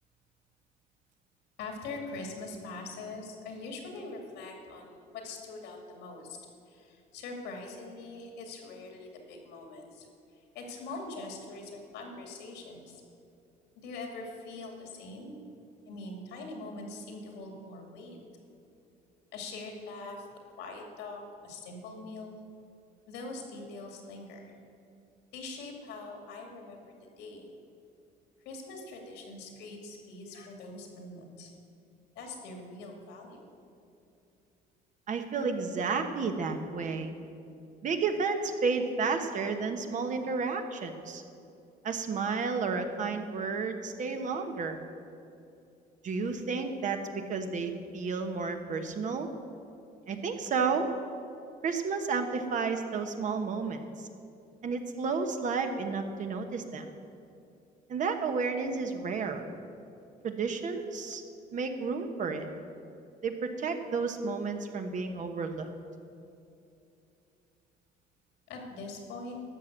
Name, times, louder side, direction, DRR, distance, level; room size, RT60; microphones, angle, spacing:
voice 1, 1.6-6.4 6.7-10.1 10.5-13.0 13.8-15.4 15.9-18.2 19.3-20.3 20.6-22.4 23.1-24.5 25.3-27.5 28.4-31.5 32.2-33.4 68.5-69.4, left 3 dB, 90° left, 2 dB, 2.3 m, -43 dB
voice 2, 35.1-37.1 37.8-41.2 41.8-44.8 46.0-49.3 50.1-50.9 51.6-53.8 54.6-56.9 57.9-59.4 60.2-61.2 61.5-62.5 63.2-65.7, right 4 dB, 50° right, 6 dB, 1.1 m, -31 dB
13.0 x 6.0 x 7.9 m, 2.6 s
cardioid pair, 110°, 17 cm